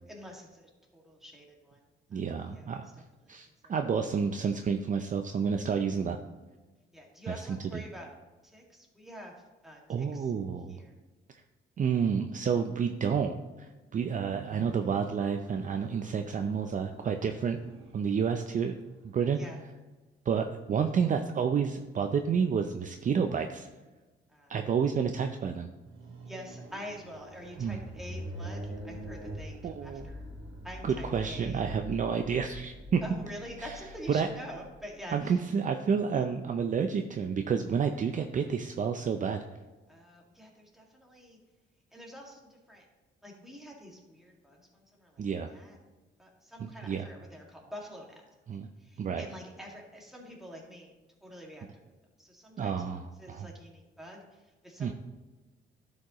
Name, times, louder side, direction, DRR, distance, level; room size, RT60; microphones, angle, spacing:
voice 1, 0.1-1.8 2.1-2.7 3.2-3.4 3.6-3.7 6.9-8.1 8.4-9.3 9.6-10.3 10.7-10.9 19.3-19.6 24.3-24.5 26.2-30.2 30.6-31.6 33.0-35.4 39.9-41.4 41.9-42.8 43.2-45.8 46.2-48.2 48.8-50.9 51.2-51.7 52.2-54.9, equal, ahead, -2 dB, 2.0 m, -46 dB
voice 2, 2.1-2.9 3.3-6.2 7.3-7.8 9.9-10.8 11.8-17.6 17.9-18.7 19.1-19.4 20.3-23.7 24.5-25.7 27.6-27.8 29.6-30.1 30.8-33.0 33.6-33.7 34.1-34.3 35.1-39.4 45.2-45.5 46.6-47.1 48.5-48.7 49.0-49.3 52.6-53.5 54.8-54.9, right 6 dB, 40° right, 6 dB, 0.5 m, -30 dB
sound 1, 14.2-19.4 25.7-31.3, right 4 dB, 85° right, 1.2 m, -53 dB
sound 2, 27.0-35.2, equal, 20° right, 1.8 m, -43 dB
11.5 x 5.3 x 3.0 m, 1.2 s
cardioid pair, 90°, 20 cm